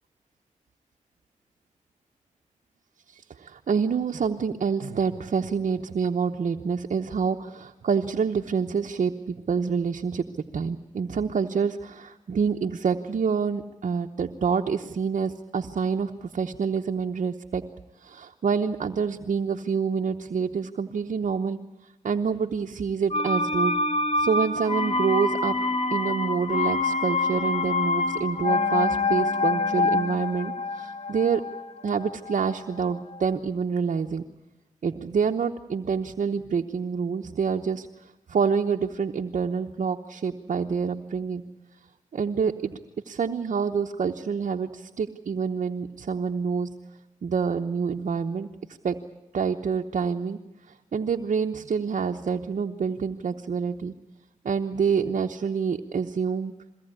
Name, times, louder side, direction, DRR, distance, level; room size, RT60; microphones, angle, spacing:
voice 1, 3.1-10.2 10.5-17.6 18.0-21.6 22.0-23.7 24.2-25.6 25.9-31.4 31.8-34.2 34.8-37.9 38.3-41.4 42.1-42.8 43.1-46.7 47.2-48.5 48.8-48.9 49.3-50.4 50.9-53.9 54.4-56.5, right 6 dB, 75° right, 4 dB, 0.9 m, -27 dB
sound 1, 23.1-32.8 33.1-33.2, left 3 dB, 50° left, 2.2 m, -26 dB
22.5 x 17.5 x 9.8 m, 0.97 s
cardioid pair, 60°, 13 cm